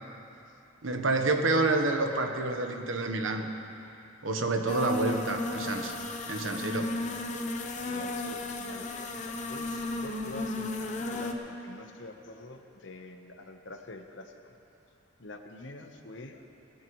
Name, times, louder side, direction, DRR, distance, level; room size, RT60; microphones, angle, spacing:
voice 1, 0.8-3.5 4.2-5.9 6.3-7.0, right 3 dB, 90° right, 5 dB, 1.1 m, -28 dB
sound 1, 4.7-11.3, left 2 dB, 40° left, 0.9 m, -34 dB
voice 2, 7.7-14.6 15.2-16.4, left 2 dB, 70° left, 5 dB, 1.0 m, -46 dB
19.0 x 16.0 x 3.1 m, 2.8 s
head